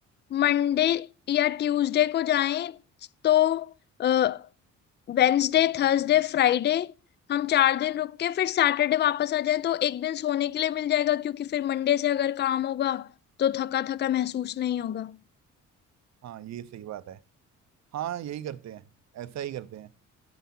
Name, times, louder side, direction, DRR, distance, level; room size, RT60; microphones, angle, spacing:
voice 1, 0.3-2.8 3.2-3.7 4.0-4.4 5.1-6.9 7.3-13.1 13.4-15.2, left 11 dB, 35° left, 0.4 m, -24 dB
voice 2, 16.2-17.2 17.9-18.8 19.1-19.9, right 11 dB, 60° right, 0.6 m, -36 dB
9.3 x 8.2 x 4.3 m
cardioid pair, 90°, 30 cm